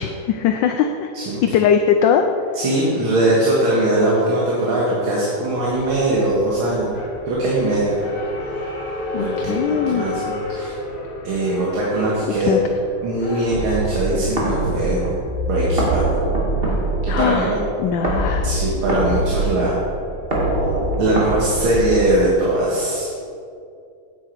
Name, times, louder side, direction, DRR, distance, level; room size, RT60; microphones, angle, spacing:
voice 1, 0.0-1.1 1.4-2.2 9.1-10.0 10.6-10.7 12.4-12.6 17.1-18.5, left 8 dB, 75° left, 6 dB, 1.1 m, -20 dB
voice 2, 1.1-1.6 2.5-6.9 7.3-8.0 9.2-9.6 9.9-10.7 11.2-12.6 13.0-15.0 15.4-16.0 17.0-17.6 18.4-19.7 21.0-23.1, right 1 dB, 75° right, -5 dB, 2.3 m, -20 dB
sound 1, 5.5-20.6, left 2 dB, 55° left, 1.7 m, -34 dB
sound 2, 13.5-22.5, right 1 dB, 30° right, 1.6 m, -23 dB
9.5 x 8.1 x 4.6 m, 2.5 s
omnidirectional pair, 2.3 m